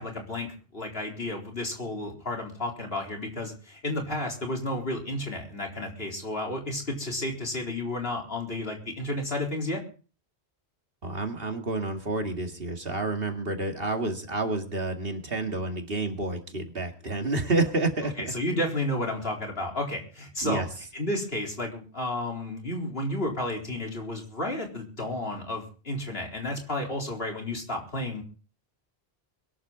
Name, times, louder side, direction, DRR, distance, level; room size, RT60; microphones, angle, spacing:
voice 1, 0.0-9.8 18.2-20.7 20.9-28.2, left 1 dB, 65° left, 1 dB, 4.3 m, -32 dB
voice 2, 11.0-18.3 20.4-20.6, right 2 dB, 60° right, 4 dB, 2.5 m, -29 dB
22.0 x 12.5 x 4.0 m, 0.38 s
omnidirectional pair, 1.1 m